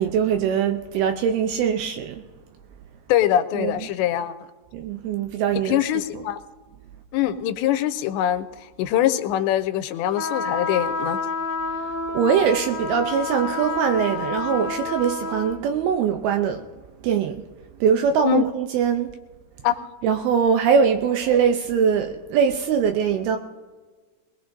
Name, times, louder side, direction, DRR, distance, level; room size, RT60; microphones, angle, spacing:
voice 1, 0.0-2.2 3.5-3.9 4.7-5.9 6.1-6.2 11.8-16.7 17.0-17.5 17.8-19.1 20.0-23.4, right 7 dB, 80° right, 2.3 m, -22 dB
voice 2, 3.1-4.4 5.7-6.4 7.1-8.5 8.8-11.2 18.2-18.4 19.6-19.8, left 12 dB, 90° left, 2.9 m, -23 dB
sound 1, 10.1-15.6, left 3 dB, 5° right, 2.6 m, -29 dB
22.0 x 19.0 x 2.6 m
omnidirectional pair, 5.0 m